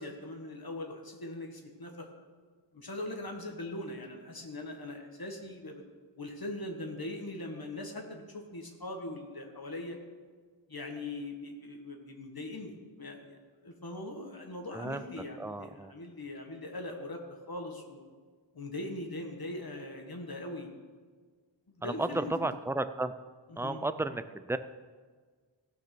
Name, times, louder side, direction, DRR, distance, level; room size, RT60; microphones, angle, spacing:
voice 1, 0.0-2.1 2.7-5.8 6.2-10.0 10.7-17.2 17.5-18.0 18.5-20.7 21.7-22.3 23.5-23.8, left 2 dB, 50° left, 2 dB, 1.7 m, -41 dB
voice 2, 14.7-15.0 15.4-15.9 21.8-23.1 23.6-24.6, right 2 dB, 5° right, 11 dB, 0.5 m, -33 dB
16.0 x 5.9 x 6.0 m, 1.5 s
wide cardioid pair, 55°, 46 cm